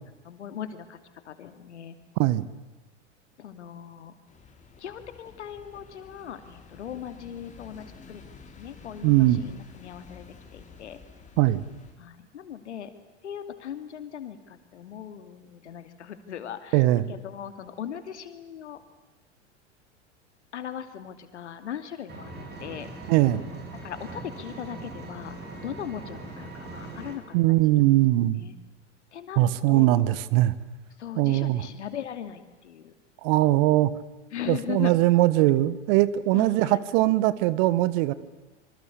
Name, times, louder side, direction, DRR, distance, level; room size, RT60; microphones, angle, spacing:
voice 1, 0.2-1.0 1.2-2.0 3.4-4.1 4.8-8.3 8.6-11.0 12.0-12.9 13.2-18.8 20.5-22.3 22.6-22.9 23.8-25.4 25.6-27.9 28.3-28.6 29.1-30.0 31.0-32.9 34.3-34.9 36.3-36.8, left 9 dB, 70° left, 9 dB, 2.8 m, -39 dB
sound 1, 4.3-11.9, left 5 dB, 20° left, 4.8 m, -50 dB
voice 2, 9.0-9.4 11.4-11.6 16.7-17.1 23.1-23.4 27.3-28.4 29.4-30.5 31.2-31.6 33.2-33.9 34.5-38.1, right 16 dB, 50° right, 17 dB, 1.5 m, -21 dB
Engine, 22.1-27.1, right 2 dB, 30° right, 7.9 m, -41 dB
27.0 x 25.0 x 8.4 m, 1.2 s
figure-of-eight pair, 85°, 36 cm